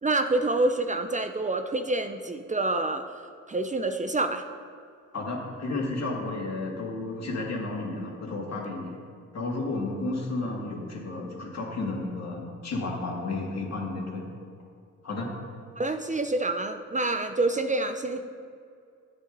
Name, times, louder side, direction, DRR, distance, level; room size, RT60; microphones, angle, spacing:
voice 1, 0.0-3.0 3.5-4.5 15.8-18.3, right 2 dB, 25° right, 7 dB, 0.6 m, -27 dB
voice 2, 5.1-8.9 9.3-14.3 15.0-15.3, left 2 dB, 55° left, -2 dB, 2.6 m, -32 dB
10.5 x 8.2 x 4.0 m, 2.3 s
cardioid pair, 65°, 31 cm